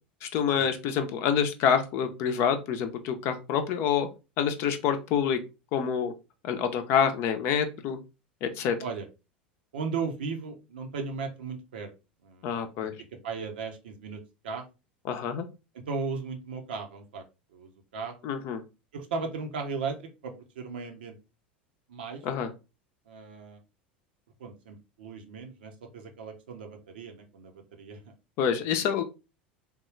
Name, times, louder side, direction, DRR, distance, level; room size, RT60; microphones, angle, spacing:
voice 1, 0.2-4.1 4.4-5.4 5.7-6.1 6.4-8.0 8.4-8.8 12.4-12.9 15.0-15.5 18.2-18.6 22.2-22.5 28.4-29.0, left 7 dB, 50° left, 7 dB, 0.6 m, -27 dB
voice 2, 9.7-11.9 12.2-12.9 13.2-14.6 15.7-17.2 17.5-18.1 18.9-21.2 21.9-22.2 23.1-23.6 24.4-28.1, right 4 dB, 70° right, 4 dB, 0.7 m, -36 dB
3.6 x 2.3 x 3.1 m, 0.28 s
figure-of-eight pair, 80°, 6 cm